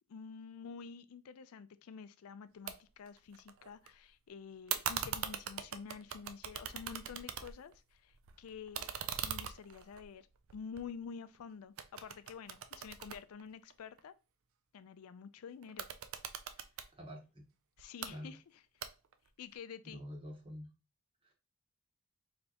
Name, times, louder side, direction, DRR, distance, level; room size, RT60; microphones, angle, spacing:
voice 1, 0.1-10.3 10.5-14.1 14.7-15.9 17.8-18.6 19.4-20.0, left 6 dB, 80° left, 0.4 m, -49 dB
sound 1, 2.7-2.8 3.1-3.9 4.7-7.8 8.1-11.4 11.8-14.0 15.6-16.9 17.8-18.1 18.8-19.3, right 8 dB, 70° right, 0.4 m, -41 dB
voice 2, 16.9-17.4 18.1-18.3 19.9-20.7, equal, 25° right, 1.0 m, -47 dB
4.4 x 3.3 x 2.8 m
head